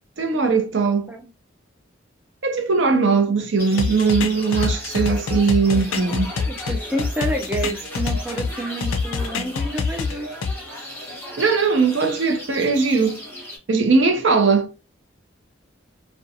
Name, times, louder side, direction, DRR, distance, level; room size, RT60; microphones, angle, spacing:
voice 1, 0.2-1.1 2.4-6.3 11.4-13.2 13.7-14.7, right 4 dB, 85° right, 0.6 m, -19 dB
sound 1, 3.6-13.6, left 1 dB, 10° left, 0.9 m, -36 dB
sound 2, 3.8-8.5 8.8-10.5, left 5 dB, 90° left, 0.3 m, -25 dB
voice 2, 6.5-10.4, right 1 dB, 10° right, 0.3 m, -29 dB
2.5 x 2.2 x 2.6 m
head